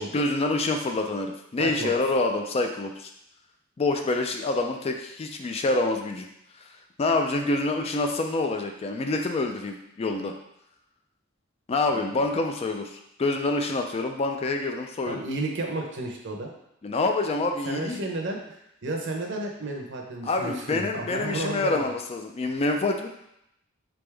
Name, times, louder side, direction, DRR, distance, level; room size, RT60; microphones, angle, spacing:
voice 1, 0.0-3.1 3.8-6.3 6.5-10.3 11.7-15.2 16.8-18.0 20.2-23.1, left 2 dB, 30° left, 4 dB, 0.3 m, -27 dB
voice 2, 1.6-1.9 11.9-12.1 15.1-16.5 17.6-21.8, right 2 dB, 60° right, 1 dB, 0.7 m, -32 dB
3.9 x 3.5 x 3.3 m, 0.79 s
head